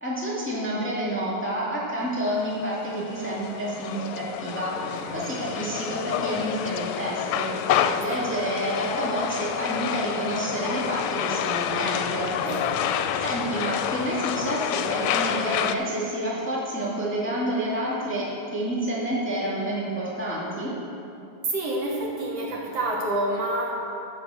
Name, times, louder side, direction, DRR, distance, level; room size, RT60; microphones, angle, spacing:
voice 1, 0.0-12.3 13.2-20.7, right 1 dB, 5° left, -7 dB, 1.5 m, -29 dB
sound 1, 2.3-15.7, left 9 dB, 80° left, 1.7 m, -28 dB
voice 2, 4.6-5.3 7.8-8.2 12.4-12.8 21.5-23.7, right 1 dB, 65° right, -2 dB, 2.2 m, -29 dB
13.5 x 4.9 x 6.9 m, 2.7 s
omnidirectional pair, 3.3 m